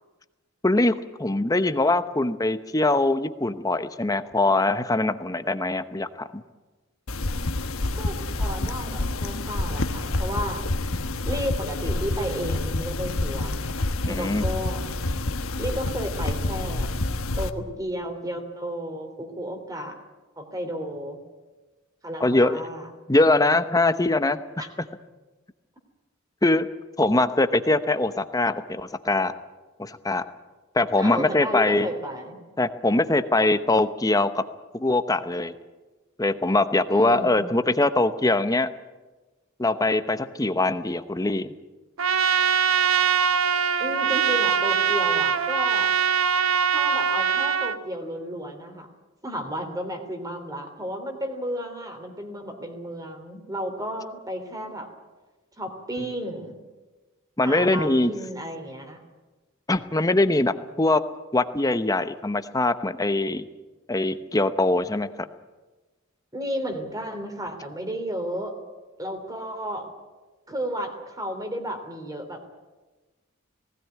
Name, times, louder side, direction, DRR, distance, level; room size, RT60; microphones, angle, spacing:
voice 1, 0.6-6.1 6.3-6.4 14.0-14.4 22.2-22.6 23.1-24.4 26.4-26.7 27.0-29.3 29.8-30.2 30.7-31.9 32.6-34.4 34.7-35.5 36.2-38.7 39.6-41.5 57.4-58.1 59.7-61.0 61.3-63.4 63.9-65.1, left 2 dB, 15° left, 11 dB, 0.8 m, -22 dB
sound 1, 7.1-17.5, left 2 dB, 90° left, 1.2 m, -28 dB
voice 2, 7.9-10.6 11.2-13.7 14.1-14.8 15.6-16.9 17.4-20.0 20.4-21.2 22.0-22.9 24.6-24.7 31.0-32.4 36.9-37.4 43.8-45.9 46.7-48.9 49.2-54.9 55.6-56.6 57.4-59.0 66.3-68.6 69.0-69.9 70.5-72.5, equal, 15° right, 5 dB, 3.0 m, -33 dB
Trumpet, 42.0-47.8, right 6 dB, 80° right, 1.1 m, -22 dB
19.0 x 17.0 x 9.4 m, 1.2 s
head